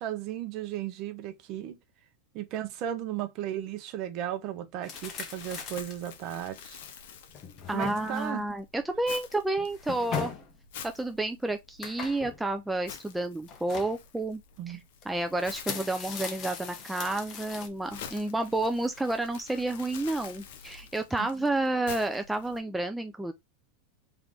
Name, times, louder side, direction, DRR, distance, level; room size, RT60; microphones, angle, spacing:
voice 1, 0.0-1.8 2.3-6.8 7.7-8.4 14.6-14.8 21.2-21.3, right 11 dB, 45° right, 0.7 m, -35 dB
sound 1, 4.8-6.1 6.6-6.7 7.3-8.4 9.6-10.5 11.8-12.4 13.5-14.0 15.0-15.1 15.5-17.7, left 6 dB, 35° left, 0.9 m, -39 dB
Crumpling crinkling, 4.9-22.6, left 7 dB, 70° left, 0.8 m, -48 dB
voice 2, 7.7-10.3 10.8-14.4 14.7-14.8 15.1-23.3, right 2 dB, 5° right, 0.3 m, -30 dB
3.3 x 3.0 x 3.8 m
supercardioid pair, 145°, 0 cm